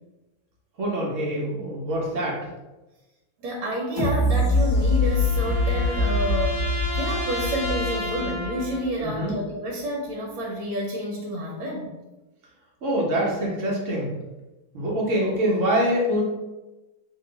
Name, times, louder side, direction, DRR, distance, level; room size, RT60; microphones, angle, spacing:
voice 1, 0.8-2.5 9.0-9.3 12.8-14.1 14.7-16.2, equal, 50° right, -3 dB, 1.0 m, -25 dB
voice 2, 3.4-6.7 6.9-11.9, right 1 dB, 75° right, -2 dB, 1.4 m, -29 dB
sound 1, 4.0-8.8 9.3-9.4, left 2 dB, 30° left, 1.3 m, -24 dB
sound 2, 4.2-8.9, left 1 dB, 50° left, 1.1 m, -33 dB
3.0 x 2.9 x 4.0 m, 1.1 s
omnidirectional pair, 2.2 m